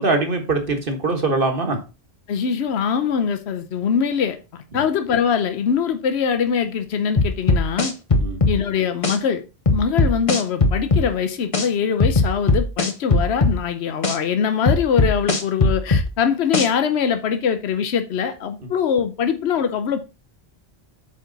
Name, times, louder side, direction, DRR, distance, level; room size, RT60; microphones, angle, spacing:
voice 1, 0.0-1.8 4.7-4.8 8.1-8.4, right 3 dB, 55° right, 1.7 m, -22 dB
voice 2, 2.3-7.9 8.5-9.4 9.7-20.1, left 7 dB, 85° left, 1.0 m, -22 dB
sound 1, 7.2-8.6 9.0-9.2 9.7-11.1 11.5-11.7 12.0-13.6 14.0-14.2 14.7-16.1 16.5-16.7, left 3 dB, 35° left, 0.9 m, -18 dB
8.3 x 5.1 x 4.0 m
omnidirectional pair, 1.1 m